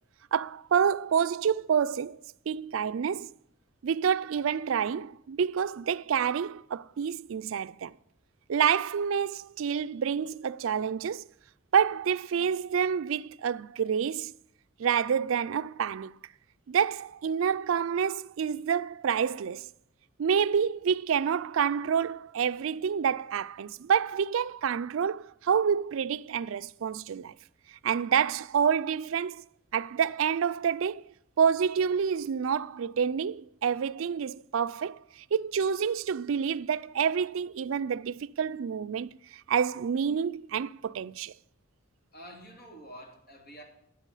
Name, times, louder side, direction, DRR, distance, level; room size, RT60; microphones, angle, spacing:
voice 1, 0.3-2.2 2.5-3.3 3.8-7.9 8.5-11.2 11.7-14.3 14.8-16.2 16.7-19.7 20.2-27.3 27.8-29.4 29.7-31.0 31.4-35.0 35.3-39.1 39.5-41.3, right 7 dB, 75° right, 0.4 m, -28 dB
voice 2, 42.1-43.6, equal, 45° left, 2.9 m, -47 dB
13.0 x 8.9 x 5.5 m
head